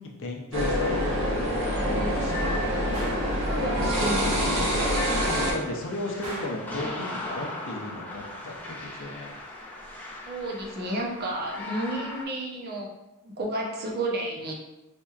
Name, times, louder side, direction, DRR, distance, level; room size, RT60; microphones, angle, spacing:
voice 1, 0.0-3.0 5.3-9.4, left 2 dB, 65° left, 0 dB, 0.6 m, -36 dB
sound 1, 0.5-5.5, equal, 65° right, 1.2 m, -25 dB
Gunshot gunfire, 2.9-3.4 6.2-6.7, right 1 dB, 85° right, 0.9 m, -38 dB
voice 2, 3.5-4.6 10.3-12.9 13.2-14.5, right 1 dB, 45° right, -2 dB, 0.7 m, -31 dB
sound 2, 4.6-12.2, left 1 dB, 10° left, 0.5 m, -39 dB
4.2 x 2.8 x 2.4 m, 0.99 s
head